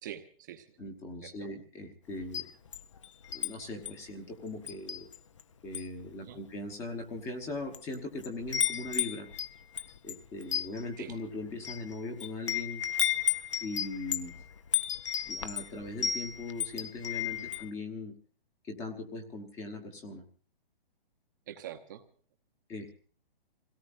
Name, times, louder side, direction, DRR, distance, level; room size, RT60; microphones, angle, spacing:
voice 1, 0.0-0.7 1.2-1.5 6.2-6.4 11.0-11.1 17.4-17.5 21.5-22.0, right 10 dB, 20° right, 7 dB, 0.9 m, -44 dB
voice 2, 0.8-2.5 3.3-5.1 5.6-9.3 10.0-12.8 13.6-14.3 15.2-18.1 18.6-20.2 22.7-22.9, left 2 dB, 10° left, 6 dB, 1.1 m, -40 dB
Wind chime, 2.2-3.5 3.9-4.1 4.7-5.4 5.7-6.0 6.7-6.8 7.5-7.9 8.2-17.7, left 8 dB, 30° left, 0.6 m, -33 dB
28.0 x 17.5 x 2.6 m, 0.44 s
hypercardioid pair, 175°, 29 cm